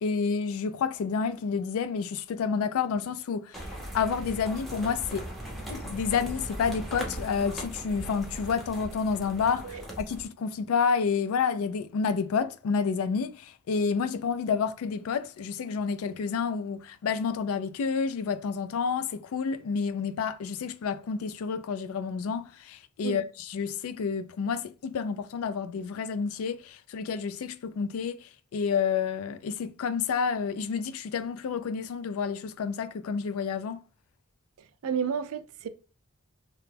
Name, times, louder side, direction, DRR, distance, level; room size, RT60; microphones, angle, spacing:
voice 1, 0.0-3.5 3.9-5.2 5.7-33.8, left 5 dB, 80° left, 0.3 m, -29 dB
sound 1, 3.5-10.3, right 1 dB, ahead, 0.6 m, -39 dB
voice 2, 34.8-35.7, right 7 dB, 80° right, 0.4 m, -31 dB
2.9 x 2.2 x 3.2 m
head